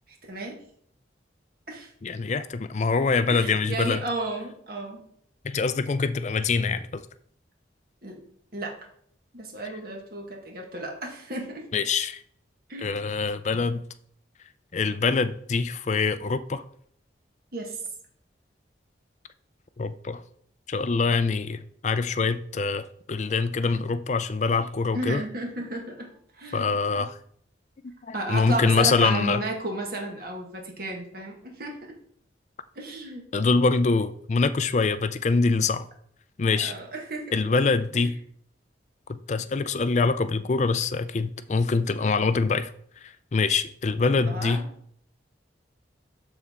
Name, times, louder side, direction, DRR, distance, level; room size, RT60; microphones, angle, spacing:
voice 1, 0.1-0.6 1.7-1.9 3.3-5.0 8.0-8.2 8.5-8.7 9.3-11.6 12.7-13.0 17.5-17.8 24.9-26.7 28.1-31.8 32.7-33.2 36.5-37.5 37.9-38.1 44.1-44.7, right 2 dB, 55° right, 1.5 m, -33 dB
voice 2, 2.0-4.0 5.4-7.0 11.7-12.2 12.8-13.8 14.7-16.6 19.8-20.2 20.7-25.2 26.5-27.1 28.1-29.4 33.3-35.9 36.4-36.7 37.3-38.1 39.1-42.7 43.3-44.6, left 4 dB, 40° left, 0.4 m, -24 dB
12.0 x 4.2 x 3.6 m
head